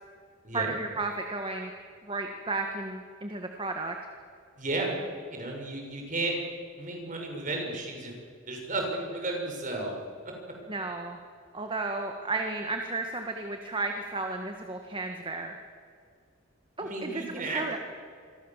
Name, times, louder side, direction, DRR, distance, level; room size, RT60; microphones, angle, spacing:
voice 1, 0.5-1.7 2.0-4.0 10.7-11.2 11.5-15.6 16.8-17.8, right 3 dB, 25° right, 4 dB, 1.8 m, -33 dB
voice 2, 4.6-4.9 5.3-6.3 6.8-8.1 8.5-9.9 16.8-17.8, right 2 dB, 40° right, 1 dB, 6.5 m, -33 dB
27.5 x 23.5 x 7.5 m, 2.1 s
head